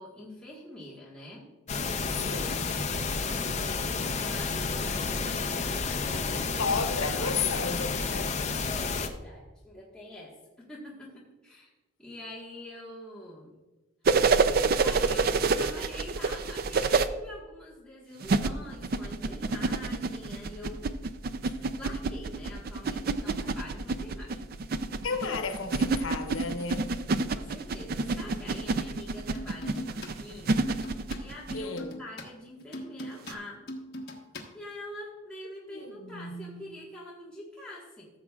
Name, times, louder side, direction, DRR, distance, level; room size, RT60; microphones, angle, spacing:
voice 1, 0.0-1.5 3.3-6.5 8.6-10.3 10.7-11.7 12.0-13.5 14.8-20.8 21.7-24.4 27.3-30.8 31.2-33.6 34.5-38.1, left 1 dB, 5° left, 1.5 m, -45 dB
sound 1, 1.7-9.1, left 4 dB, 35° left, 0.6 m, -31 dB
voice 2, 2.1-2.8 6.3-8.4 21.4-21.7 25.0-27.0 31.5-32.0 35.7-36.7, left 4 dB, 85° left, 1.0 m, -34 dB
sound 2, 14.0-17.1 18.2-31.6 33.3-33.4, right 4 dB, 50° right, 0.4 m, -27 dB
sound 3, 29.3-30.1 30.4-34.4, left 1 dB, 50° left, 1.3 m, -40 dB
15.0 x 7.4 x 2.4 m
head